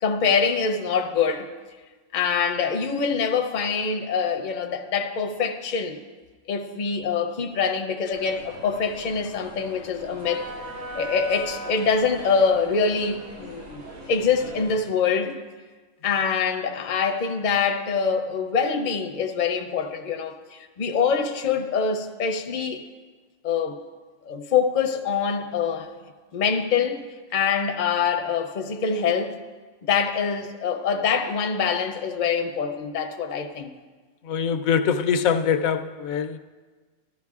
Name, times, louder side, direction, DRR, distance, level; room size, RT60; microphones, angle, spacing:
voice 1, 0.0-1.5 2.1-6.0 6.5-10.5 10.9-15.4 16.0-22.8 23.4-23.8 24.3-25.9 26.3-27.0 27.3-29.4 29.9-33.7, left 6 dB, 45° left, 0.6 m, -24 dB
sound 1, 8.1-14.8, right 1 dB, 75° right, 3.8 m, -40 dB
voice 2, 34.2-36.4, left 7 dB, 85° left, 1.0 m, -23 dB
14.5 x 12.0 x 2.4 m
omnidirectional pair, 1.4 m